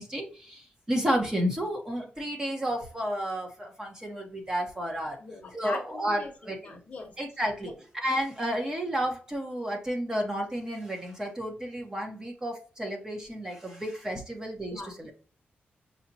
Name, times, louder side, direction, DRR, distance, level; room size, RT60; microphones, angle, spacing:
voice 1, 0.0-5.2 5.5-6.6 7.2-7.7 8.0-15.1, equal, 15° right, 2 dB, 0.9 m, -31 dB
voice 2, 5.2-7.1 7.6-7.8 14.7-14.9, left 3 dB, 40° left, 4 dB, 0.9 m, -40 dB
5.6 x 2.8 x 2.7 m, 0.39 s
wide cardioid pair, 175°, 4 cm